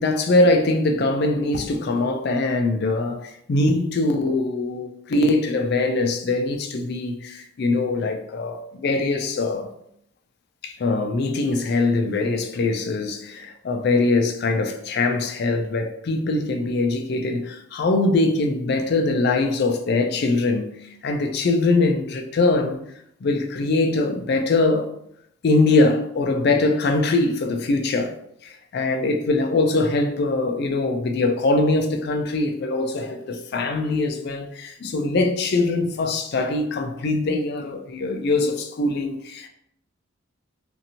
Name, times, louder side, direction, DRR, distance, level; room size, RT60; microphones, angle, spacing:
voice 1, 0.0-9.7 10.6-20.7 21.0-22.8 23.2-24.9 25.4-39.5, left 2 dB, 50° left, 0.3 m, -22 dB
2.8 x 2.5 x 2.7 m
head